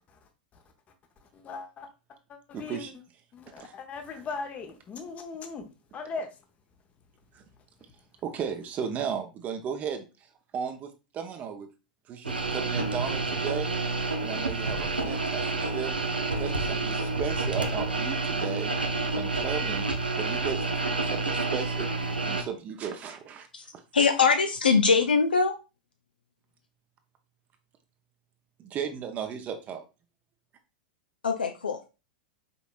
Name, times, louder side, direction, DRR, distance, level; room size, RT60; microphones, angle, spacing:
voice 1, 1.2-1.9 2.3-2.8 3.3-5.6 5.9-6.4, left 4 dB, 30° left, 0.8 m, -39 dB
voice 2, 2.5-2.9 3.6-3.7 7.3-7.4 8.2-10.0 10.5-11.7 12.1-13.7 14.2-18.7 19.1-19.9 20.2-21.9 22.2-23.5 23.7-23.8 28.6-29.8, right 7 dB, 35° right, 0.7 m, -35 dB
sound 1, 12.2-22.4, right 3 dB, 90° right, 0.7 m, -29 dB
voice 3, 23.9-25.5 31.2-31.9, left 5 dB, 80° left, 0.5 m, -22 dB
5.3 x 3.9 x 2.4 m
figure-of-eight pair, 95°, 5 cm